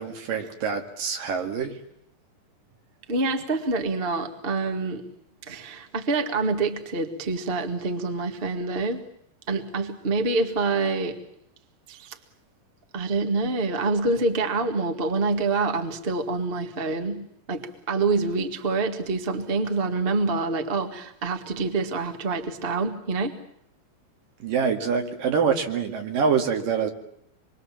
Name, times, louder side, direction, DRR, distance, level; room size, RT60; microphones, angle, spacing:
voice 1, 0.0-1.8 24.4-26.9, right 6 dB, 70° right, 4 dB, 3.9 m, -25 dB
voice 2, 3.1-5.0 5.4-9.0 9.5-11.2 11.9-12.1 12.9-23.3, right 3 dB, 25° right, 6 dB, 1.3 m, -26 dB
26.5 x 23.0 x 7.5 m, 0.72 s
omnidirectional pair, 4.1 m